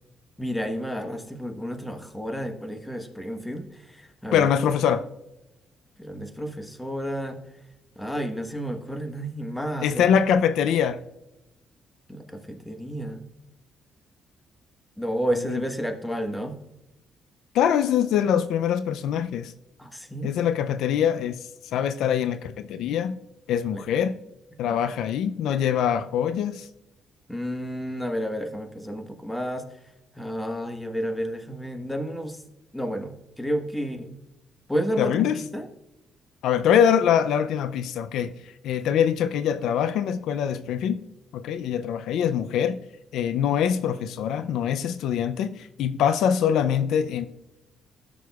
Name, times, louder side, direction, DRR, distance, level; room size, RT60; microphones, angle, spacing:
voice 1, 0.4-4.5 6.0-7.4 7.9-10.0 12.1-13.2 15.0-16.5 19.8-20.3 23.7-23.8 24.7-24.8 27.3-29.8 30.1-32.4 32.7-34.1 34.7-35.7, equal, 5° left, 1.2 m, -31 dB
voice 2, 4.3-5.0 9.8-11.0 15.3-15.6 17.5-19.5 20.2-23.2 23.5-24.1 24.6-26.7 35.0-35.4 36.4-41.0 41.3-42.8 43.1-47.3, left 8 dB, 85° left, 0.4 m, -23 dB
14.0 x 6.1 x 2.3 m
cardioid pair, 90°, 0 cm